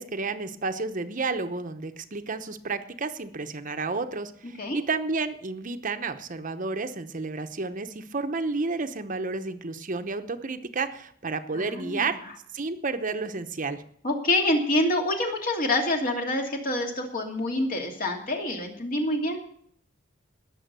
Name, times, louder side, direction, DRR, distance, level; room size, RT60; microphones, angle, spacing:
voice 1, 0.0-12.2 12.5-13.8, right 3 dB, 45° right, 8 dB, 0.9 m, -31 dB
voice 2, 4.4-4.8 11.5-12.1 14.0-19.4, left 1 dB, 50° left, 2 dB, 2.6 m, -27 dB
19.5 x 7.1 x 6.8 m, 0.64 s
head